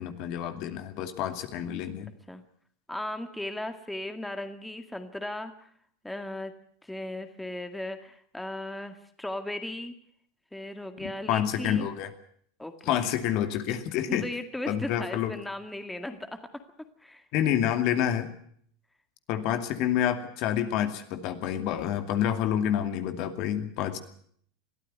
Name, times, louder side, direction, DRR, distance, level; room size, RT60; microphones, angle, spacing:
voice 1, 0.0-2.1 11.3-12.1 12.8-14.2 14.7-15.3 17.3-18.3 19.3-24.0, left 10 dB, 55° left, 7 dB, 2.4 m, -28 dB
voice 2, 2.9-5.7 6.0-6.5 6.8-9.9 10.5-11.9 12.6-13.0 14.1-16.6 17.0-17.2, left 1 dB, 5° left, 7 dB, 2.0 m, -37 dB
22.0 x 14.0 x 9.5 m, 0.63 s
hypercardioid pair, 100°, 0 cm